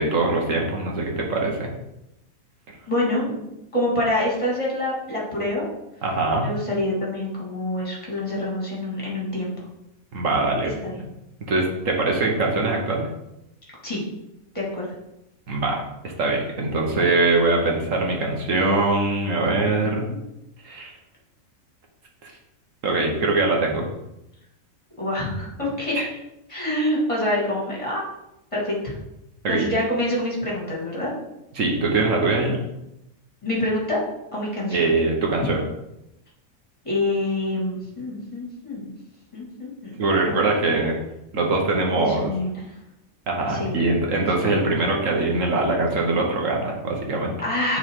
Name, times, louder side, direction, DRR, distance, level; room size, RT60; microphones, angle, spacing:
voice 1, 0.0-1.7 6.0-6.5 10.1-10.7 11.5-13.1 15.5-20.1 20.6-20.9 22.2-22.3 22.8-23.9 26.0-26.1 29.4-29.7 31.5-32.6 34.7-35.6 40.0-41.0 41.3-42.3 43.3-47.4, right 2 dB, 65° right, 0 dB, 1.5 m, -22 dB
voice 2, 2.9-3.4 3.7-5.6 6.4-9.5 10.6-11.0 13.8-14.0 14.5-14.9 19.8-20.2 25.0-26.0 26.5-28.0 28.5-28.9 29.5-31.1 33.4-34.0 34.3-34.9 36.8-38.9 39.3-40.0 42.0-42.6 43.5-43.8 44.4-44.7 47.4-47.8, left 1 dB, 20° left, -5 dB, 2.2 m, -26 dB
9.4 x 3.9 x 3.7 m, 0.88 s
omnidirectional pair, 1.5 m